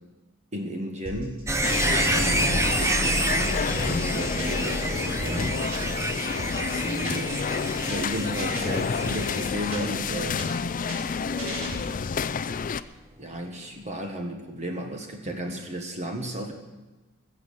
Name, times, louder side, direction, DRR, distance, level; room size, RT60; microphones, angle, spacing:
voice 1, 0.5-1.4 1.8-5.6 6.8-7.3 7.8-10.4 11.3-11.8 13.2-16.5, right 1 dB, 30° right, 3 dB, 1.4 m, -34 dB
sound 1, 1.1-2.1 2.4-4.8 5.1-7.4 7.7-8.1 8.4-10.1 10.4-12.2, equal, 80° right, 5.9 m, -38 dB
sound 2, 1.5-12.3 12.6-12.7, right 1 dB, 15° right, 0.8 m, -29 dB
sound 3, 1.6-12.8, left 6 dB, 40° left, 0.4 m, -30 dB
20.5 x 7.6 x 6.9 m, 1.1 s
head